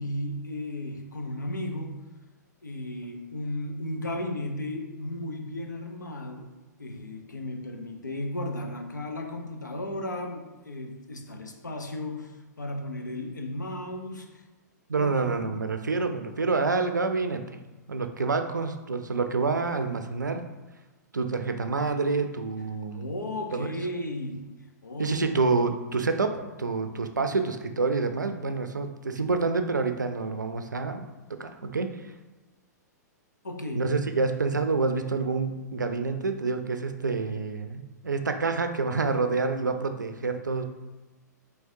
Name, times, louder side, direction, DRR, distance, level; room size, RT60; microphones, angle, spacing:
voice 1, 0.0-2.0 2.6-6.5 6.8-14.4 15.0-15.4 22.9-24.5 24.8-25.3 33.4-33.9, left 1 dB, 85° left, 3 dB, 0.7 m, -35 dB
voice 2, 14.9-17.6 17.9-20.4 21.1-23.1 23.5-23.7 25.0-31.9 33.7-40.7, right 4 dB, 85° right, 7 dB, 0.4 m, -28 dB
4.7 x 3.2 x 2.6 m, 1.2 s
figure-of-eight pair, 110°, 10 cm